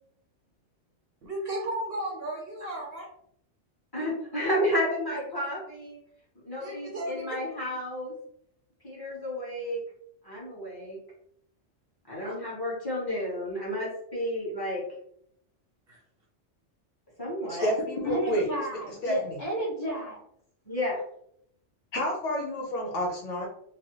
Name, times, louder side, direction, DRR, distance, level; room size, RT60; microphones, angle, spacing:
voice 1, 1.2-3.1 4.0-4.1 6.6-7.3 12.1-12.3 15.9-16.0 17.6-17.7, right 1 dB, 60° right, -1 dB, 0.7 m, -35 dB
voice 2, 3.9-6.0 6.4-8.1 8.8-9.8 10.2-11.0 12.1-14.8 17.2-17.7 20.6-21.0, left 1 dB, 20° left, -7 dB, 1.4 m, -31 dB
voice 3, 17.5-18.5 19.0-19.3 21.9-23.5, equal, 65° left, -1 dB, 1.3 m, -29 dB
voice 4, 18.0-20.2, equal, 40° left, -4 dB, 0.6 m, -31 dB
3.2 x 2.3 x 3.0 m, 0.70 s
omnidirectional pair, 1.3 m